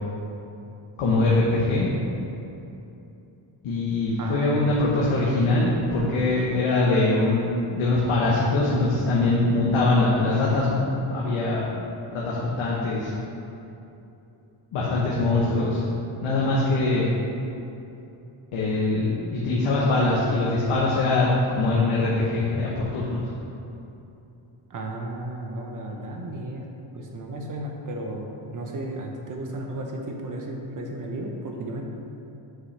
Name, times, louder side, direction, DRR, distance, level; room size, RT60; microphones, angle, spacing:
voice 1, 1.0-1.9 3.6-10.8 11.1-11.7 12.1-13.1 14.7-15.9 16.2-17.1 18.5-23.3, left 2 dB, 80° left, -5 dB, 1.1 m, -22 dB
voice 2, 4.2-4.8 24.7-26.7 26.9-31.8, right 1 dB, 40° right, 1 dB, 0.8 m, -34 dB
7.6 x 5.7 x 3.3 m, 2.8 s
wide cardioid pair, 165°, 49 cm